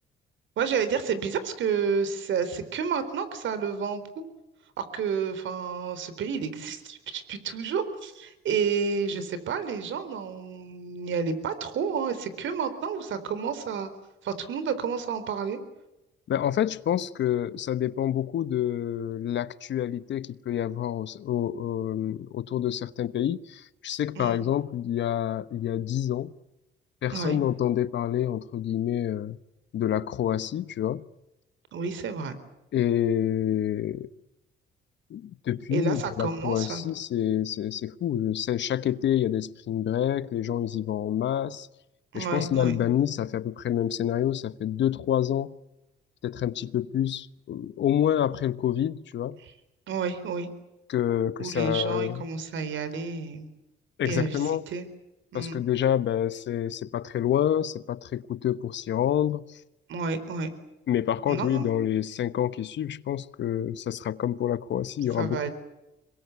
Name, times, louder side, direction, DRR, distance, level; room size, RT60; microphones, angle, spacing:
voice 1, 0.6-4.0 4.8-13.9 14.2-15.6 24.2-24.4 27.1-27.4 31.7-32.3 35.7-36.8 42.1-42.7 49.4-49.5 49.9-50.5 51.4-53.5 54.0-54.8 55.3-55.6 59.9-60.5 61.3-61.7 65.1-65.5, right 5 dB, 75° right, 4.1 m, -30 dB
voice 2, 16.3-26.3 27.0-29.4 29.7-31.0 32.7-34.1 35.1-41.7 42.1-45.6 46.2-49.4 50.9-52.2 54.0-54.6 55.3-59.6 60.9-65.5, left 10 dB, 65° left, 1.2 m, -27 dB
26.5 x 22.5 x 8.3 m
cardioid pair, 90°, 20 cm